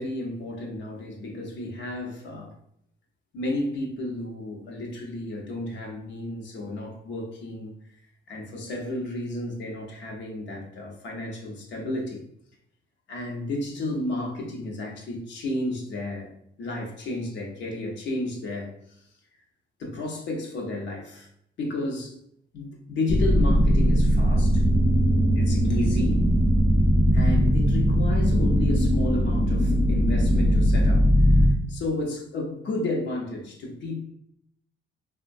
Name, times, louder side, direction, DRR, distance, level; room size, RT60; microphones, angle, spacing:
voice 1, 0.0-2.5 3.3-7.7 8.3-12.2 13.1-16.3 16.6-18.7 19.8-21.3 21.6-22.2 22.5-24.6 25.3-26.3 27.1-34.0, left 2 dB, 70° left, 0 dB, 0.8 m, -32 dB
sound 1, 23.1-31.5, equal, 35° left, 0.6 m, -20 dB
3.7 x 2.1 x 2.5 m, 0.70 s
cardioid pair, 130°, 19 cm